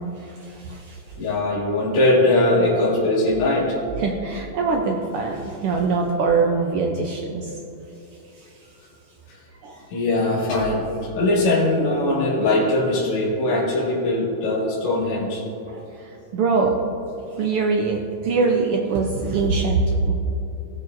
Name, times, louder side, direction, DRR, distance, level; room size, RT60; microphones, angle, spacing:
voice 1, 0.0-1.0 4.0-7.6 8.4-8.5 9.6-9.9 15.7-16.8 17.3-20.1, right 4 dB, 85° right, 1 dB, 1.2 m, -23 dB
voice 2, 1.2-3.8 9.3-9.4 9.9-15.4, left 2 dB, 55° left, -8 dB, 2.8 m, -21 dB
16.0 x 8.2 x 2.6 m, 2.8 s
omnidirectional pair, 3.3 m